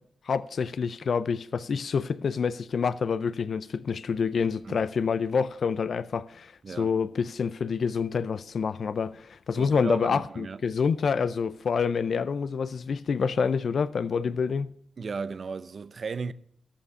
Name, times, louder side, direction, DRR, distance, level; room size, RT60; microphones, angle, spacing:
voice 1, 0.3-14.7, left 6 dB, 65° left, 0.4 m, -27 dB
voice 2, 9.6-10.7 15.0-16.3, right 5 dB, 55° right, 0.6 m, -35 dB
12.5 x 7.1 x 6.6 m
cardioid pair, 55°, 0 cm